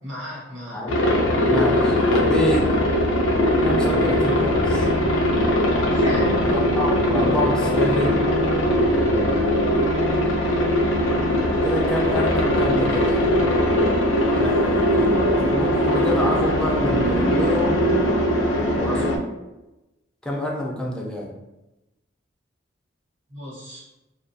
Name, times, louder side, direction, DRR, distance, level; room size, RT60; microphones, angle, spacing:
voice 1, 0.0-0.8 5.9-6.3 9.1-9.4 18.9-19.1 23.3-23.8, equal, 70° right, -7 dB, 1.1 m, -35 dB
Aircraft, 0.9-19.2, equal, 75° left, 0.4 m, -20 dB
voice 2, 1.4-2.7 3.6-4.9 6.4-8.2 11.6-13.3 14.3-15.1 15.4-17.9 18.8-19.0 20.2-21.3, equal, 5° left, -2 dB, 0.4 m, -27 dB
2.3 x 2.3 x 2.6 m, 0.99 s
head